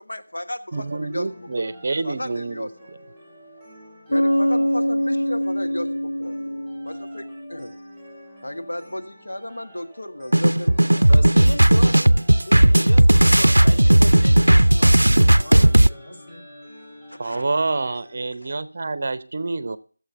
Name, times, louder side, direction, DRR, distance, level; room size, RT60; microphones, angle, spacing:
voice 1, 0.0-1.3 1.6-1.7 2.0-2.9 4.1-7.8 8.4-11.4 17.1-17.4 18.4-18.5, left 1 dB, 70° left, 1.4 m, -34 dB
sound 1, 0.7-18.2, equal, 10° left, 5.5 m, -47 dB
voice 2, 0.7-2.7 17.2-19.8, right 3 dB, 40° right, 0.7 m, -27 dB
Bass guitar, 4.1-7.8, equal, 90° left, 0.8 m, -24 dB
sound 2, 10.3-15.9, right 1 dB, 75° right, 0.4 m, -14 dB
voice 3, 11.1-16.4, left 1 dB, 45° left, 2.3 m, -36 dB
13.5 x 7.3 x 5.8 m
figure-of-eight pair, 165°, 0 cm